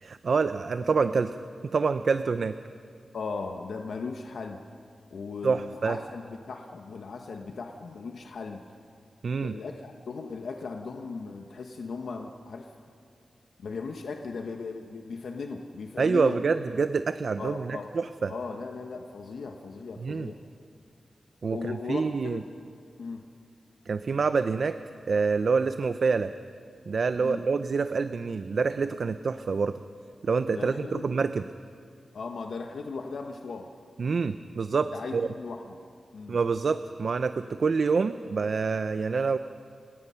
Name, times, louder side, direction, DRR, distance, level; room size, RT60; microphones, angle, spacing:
voice 1, 0.0-1.4 1.6-2.5 5.4-6.0 9.2-9.5 16.0-18.3 20.0-20.3 21.4-22.4 23.9-24.8 25.1-26.3 26.9-29.8 30.2-31.4 34.0-35.3 36.3-39.4, right 4 dB, 50° right, 11 dB, 0.5 m, -27 dB
voice 2, 3.1-4.6 5.1-8.6 9.4-12.7 13.6-16.4 17.4-17.9 18.3-20.4 21.5-22.5 23.0-23.2 27.1-27.4 30.5-31.1 32.1-33.7 34.9-35.6 36.1-36.4, left 4 dB, 75° left, 3 dB, 1.2 m, -37 dB
30.0 x 18.0 x 5.7 m, 2.3 s
wide cardioid pair, 175°, 0 cm